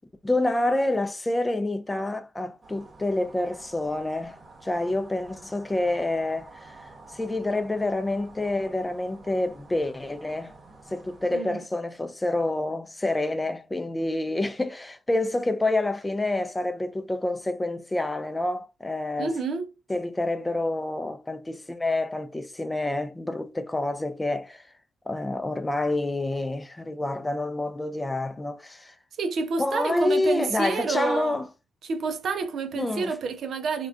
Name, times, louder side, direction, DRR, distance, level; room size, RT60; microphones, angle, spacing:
voice 1, 0.2-4.4 4.6-10.5 10.9-19.3 19.9-24.7 25.1-28.9 29.6-31.5 32.8-33.1, left 2 dB, 20° left, 0.4 m, -28 dB
sound 1, 2.6-11.4, right 3 dB, 40° right, 0.9 m, -50 dB
voice 2, 19.2-19.7 29.2-31.4 31.8-33.9, right 4 dB, 65° right, 0.4 m, -29 dB
2.4 x 2.2 x 2.3 m
hypercardioid pair, 40°, 0 cm